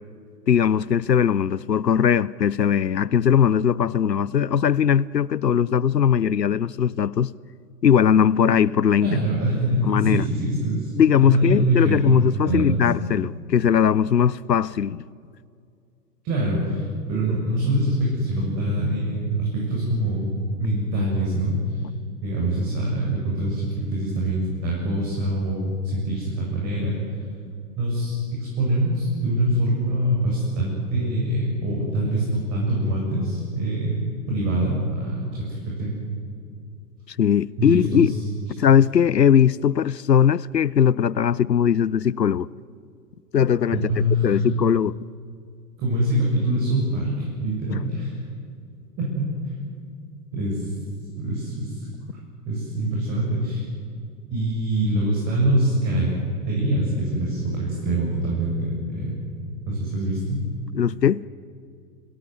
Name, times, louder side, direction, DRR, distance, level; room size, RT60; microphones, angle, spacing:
voice 1, 0.5-7.3 7.8-9.1 9.9-10.2 10.9-15.0 37.2-38.1 38.6-42.5 43.3-45.0 47.7-47.8 60.7-61.3, left 8 dB, 90° left, 0.6 m, -19 dB
voice 2, 9.0-10.9 11.3-12.8 16.2-20.3 20.6-21.8 22.2-25.7 25.9-27.0 27.8-34.0 34.3-35.9 37.6-38.2 43.7-44.4 45.8-48.1 49.0-49.3 50.3-50.7 51.2-51.9 52.4-53.6 54.3-56.1 56.5-59.2 59.7-60.4, right 1 dB, 35° right, 7.8 m, -24 dB
28.5 x 18.0 x 9.7 m
figure-of-eight pair, 100°, 48 cm